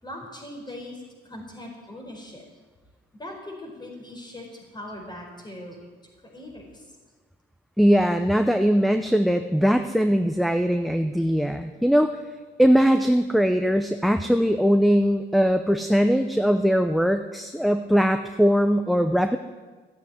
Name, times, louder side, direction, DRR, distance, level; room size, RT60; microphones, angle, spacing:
voice 1, 0.0-2.4 3.1-5.8 6.3-7.0, left 1 dB, 20° left, 1 dB, 4.5 m, -40 dB
voice 2, 7.8-12.1 12.6-19.4, equal, ahead, 8 dB, 0.6 m, -21 dB
14.0 x 8.4 x 9.3 m, 1.4 s
cardioid pair, 90°, 20 cm